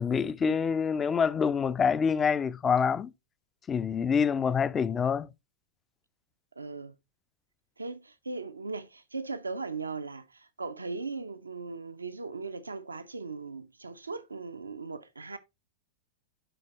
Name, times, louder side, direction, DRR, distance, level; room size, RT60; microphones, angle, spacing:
voice 1, 0.0-3.1 3.7-5.3, left 6 dB, 20° left, 0.3 m, -26 dB
voice 2, 6.6-6.9 7.8-15.4, right 4 dB, 80° right, 0.4 m, -38 dB
11.5 x 3.9 x 3.0 m
figure-of-eight pair, 95°, 0 cm